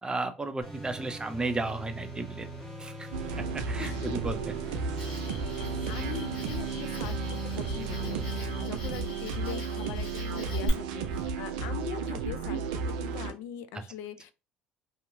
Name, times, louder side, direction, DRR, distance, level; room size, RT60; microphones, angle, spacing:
voice 1, 0.0-2.5 2.8-3.1 3.5-4.6 13.7-13.8, right 2 dB, 20° right, 0.6 m, -34 dB
sound 1, 0.6-8.6, right 2 dB, 10° left, 1.3 m, -42 dB
sound 2, 3.1-13.3, right 4 dB, 75° right, 0.4 m, -33 dB
voice 2, 3.8-4.2 5.9-14.3, left 10 dB, 65° left, 0.3 m, -42 dB
Cricket, 5.0-10.7, left 2 dB, 85° left, 0.9 m, -45 dB
2.7 x 2.4 x 2.6 m
hypercardioid pair, 60°, 4 cm